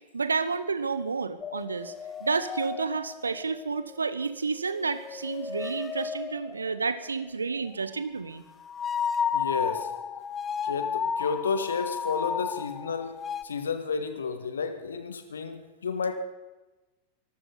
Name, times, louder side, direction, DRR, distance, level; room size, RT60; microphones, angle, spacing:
voice 1, 0.1-1.9 2.2-8.4, right 4 dB, 75° right, 14 dB, 1.0 m, -30 dB
sound 1, 1.4-4.3 4.6-7.1 8.6-13.4, left 7 dB, 20° left, 0.8 m, -33 dB
voice 2, 9.3-9.9 10.6-16.2, left 5 dB, 70° left, 9 dB, 1.8 m, -31 dB
23.0 x 15.0 x 4.0 m, 1.1 s
figure-of-eight pair, 90°, 0 cm